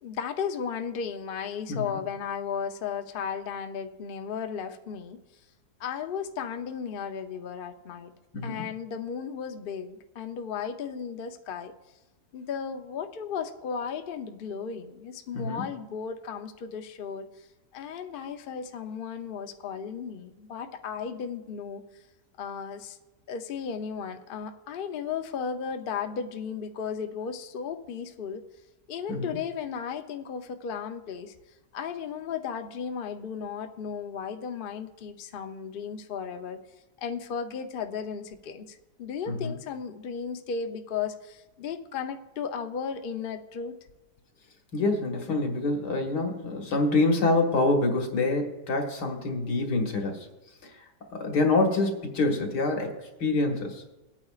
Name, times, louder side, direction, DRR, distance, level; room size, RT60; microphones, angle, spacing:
voice 1, 0.0-5.2 5.8-8.1 8.4-11.7 12.3-17.5 17.7-22.0 22.4-23.0 23.3-28.4 28.9-31.3 31.7-36.6 37.0-43.8, left 6 dB, 60° left, 6 dB, 0.5 m, -35 dB
voice 2, 1.7-2.0 8.3-8.6 15.3-15.6 29.1-29.4 39.3-39.5 44.7-50.3 50.6-50.8 51.1-53.0 53.2-53.8, left 2 dB, 75° left, 2 dB, 2.1 m, -26 dB
20.5 x 8.8 x 2.4 m, 1.1 s
omnidirectional pair, 1.8 m